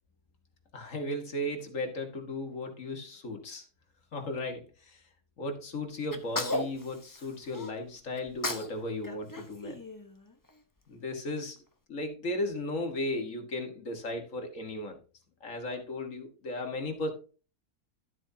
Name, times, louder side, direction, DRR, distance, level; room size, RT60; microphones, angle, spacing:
voice 1, 0.7-3.7 4.1-5.0 5.4-9.8 10.9-11.6 11.9-15.0 15.4-17.1, left 1 dB, 55° left, 1.9 m, -35 dB
Sneeze, 6.1-7.7 8.2-8.8 9.0-10.5, left 1 dB, 15° left, 0.7 m, -36 dB
12.5 x 7.6 x 2.8 m
omnidirectional pair, 1.7 m